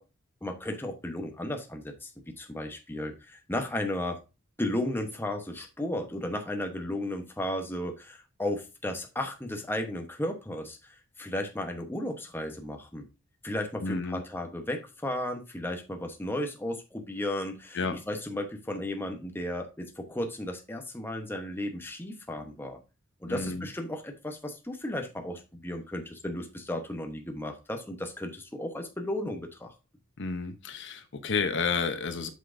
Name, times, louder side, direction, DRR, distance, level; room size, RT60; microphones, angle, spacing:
voice 1, 0.4-4.2 4.6-13.1 13.4-17.8 18.1-22.8 23.2-29.7, left 1 dB, 10° left, 4 dB, 1.0 m, -34 dB
voice 2, 13.8-14.2 17.7-18.0 23.3-23.7 30.2-32.3, left 5 dB, 60° left, 9 dB, 0.8 m, -31 dB
8.2 x 5.9 x 2.6 m, 0.28 s
head